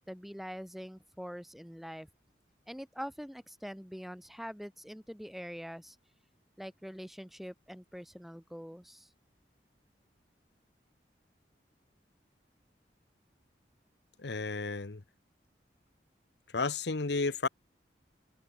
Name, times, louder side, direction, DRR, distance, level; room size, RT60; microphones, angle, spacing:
voice 1, 0.1-2.1 2.7-6.0 6.6-9.1, equal, ahead, 1.8 m, -44 dB
voice 2, 14.2-15.0 16.5-17.5, left 3 dB, 75° left, 1.0 m, -32 dB
head